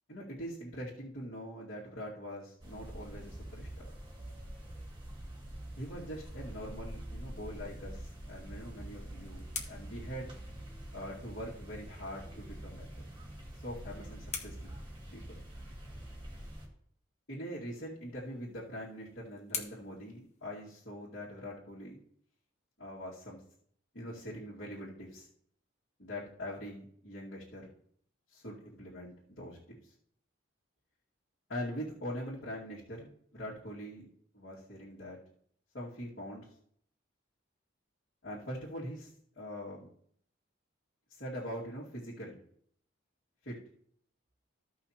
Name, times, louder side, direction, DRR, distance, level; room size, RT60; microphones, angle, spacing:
voice 1, 0.1-3.9 5.8-10.3 10.9-12.9 13.5-14.7 15.1-15.4 17.3-22.0 22.8-23.4 23.9-25.3 26.0-27.7 28.3-29.9 31.5-34.1 34.3-35.2 35.7-36.5 38.2-39.9 41.1-42.4 43.4-43.6, equal, 65° left, -9 dB, 2.3 m, -43 dB
sound 1, 2.6-16.7, right 1 dB, 25° right, 1.8 m, -46 dB
sound 2, 13.2-15.7 17.9-21.0, left 5 dB, 35° left, 1.2 m, -47 dB
15.0 x 5.7 x 3.0 m, 0.65 s
head